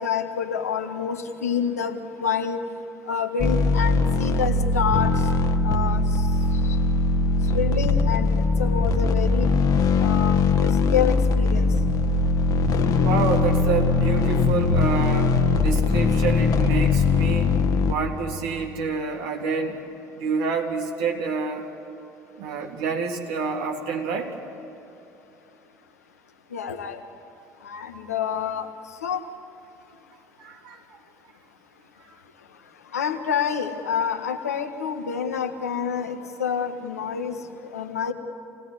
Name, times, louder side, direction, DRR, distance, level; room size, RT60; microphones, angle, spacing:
voice 1, 0.0-2.6 3.1-5.3 5.6-6.3 6.6-6.8 7.5-9.5 10.0-11.7 26.5-27.0 27.6-28.7 29.0-29.2 32.9-38.1, left 7 dB, 85° left, 5 dB, 1.6 m, -28 dB
sound 1, 3.4-17.9, left 3 dB, 50° left, 1.8 m, -21 dB
voice 2, 13.0-15.3 15.6-17.6 17.8-19.8 20.2-21.7 22.4-24.3 30.4-30.8, right 5 dB, 65° right, 1 dB, 3.2 m, -28 dB
27.5 x 18.5 x 9.8 m, 2.9 s
figure-of-eight pair, 60°, 8 cm